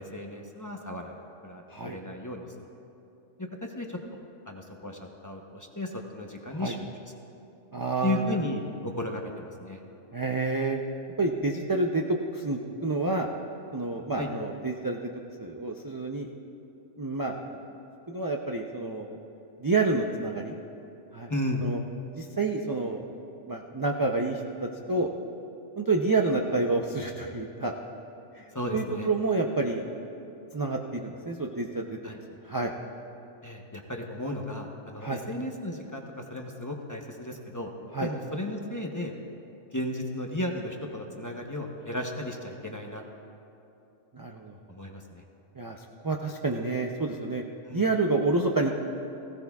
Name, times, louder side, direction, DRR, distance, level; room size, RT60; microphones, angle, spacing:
voice 1, 0.0-2.5 3.4-4.0 4.5-6.8 8.0-9.8 14.2-14.3 21.3-21.7 28.5-29.1 32.0-32.2 33.4-37.7 38.0-39.1 39.7-43.0 44.7-45.2 47.6-47.8, left 1 dB, 20° left, 1 dB, 0.7 m, -34 dB
voice 2, 7.7-8.4 10.1-10.8 11.2-12.0 12.3-13.3 13.7-15.1 15.4-16.3 17.0-17.6 18.1-19.2 19.6-20.5 21.1-21.3 21.6-21.8 22.2-23.1 23.5-25.1 25.8-27.7 28.3-28.5 28.7-29.8 30.5-32.0 32.4-32.7 35.0-35.2 37.9-38.1 44.1-44.5 45.6-47.4 47.7-48.7, right 3 dB, 35° right, 1 dB, 0.3 m, -28 dB
18.0 x 16.0 x 2.3 m, 2.8 s
omnidirectional pair, 1.3 m